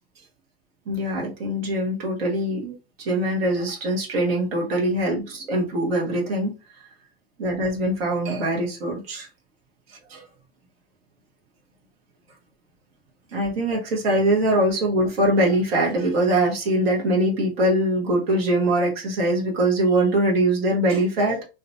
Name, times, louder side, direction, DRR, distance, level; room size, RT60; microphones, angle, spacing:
voice 1, 0.9-6.5 7.4-9.3 9.9-10.2 13.3-21.4, right 1 dB, 75° right, -1 dB, 1.0 m, -22 dB
2.5 x 2.2 x 2.6 m, 0.31 s
hypercardioid pair, 85°, 30 cm